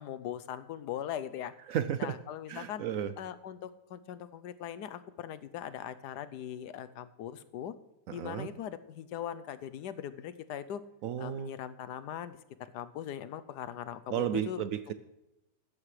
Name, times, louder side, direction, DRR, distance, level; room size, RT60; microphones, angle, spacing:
voice 1, 0.0-1.5 2.0-2.8 3.2-7.7 8.1-10.8 11.2-14.7, left 10 dB, 80° left, 13 dB, 1.2 m, -40 dB
voice 2, 1.7-2.1 2.5-3.1 8.1-8.5 11.0-11.5 14.1-14.9, right 9 dB, 70° right, 12 dB, 0.8 m, -33 dB
15.5 x 12.5 x 3.2 m, 0.93 s
omnidirectional pair, 1.8 m